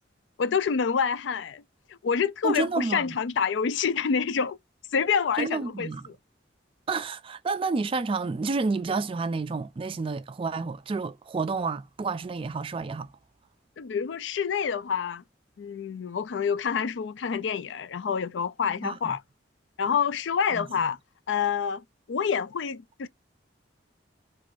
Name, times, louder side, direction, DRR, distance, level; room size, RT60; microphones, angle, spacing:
voice 1, 0.4-1.6 1.9-4.6 4.9-6.1 13.8-15.2 15.6-19.2 19.8-21.0 21.3-23.1, left 6 dB, 70° left, 0.4 m, -27 dB
voice 2, 2.4-3.2 5.4-6.0 6.9-13.1 18.8-19.2 20.5-20.9, right 4 dB, 30° right, 0.3 m, -30 dB
4.5 x 2.5 x 2.5 m
head